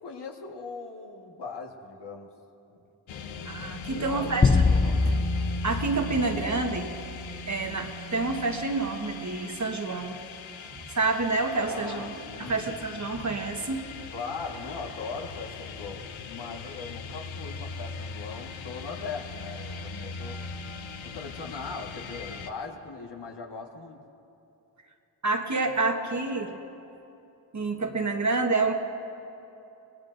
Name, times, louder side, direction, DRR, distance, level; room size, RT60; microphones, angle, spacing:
voice 1, 0.0-2.3 2.7-2.8 3.9-4.3 4.7-5.0 11.6-12.7 14.1-20.4 21.0-24.0, left 4 dB, 60° left, 2 dB, 1.6 m, -39 dB
sound 1, 3.1-22.5, left 2 dB, 85° left, 0.8 m, -40 dB
voice 2, 3.4-4.6 5.0-5.1 5.6-6.9 7.5-10.2 10.8-12.1 12.4-13.8 25.2-26.5 27.5-28.7, right 3 dB, 40° right, 3 dB, 1.4 m, -28 dB
sound 2, 4.4-7.0, left 4 dB, 15° left, 0.4 m, -24 dB
24.0 x 18.5 x 2.6 m, 2.8 s
cardioid pair, 70°, 45 cm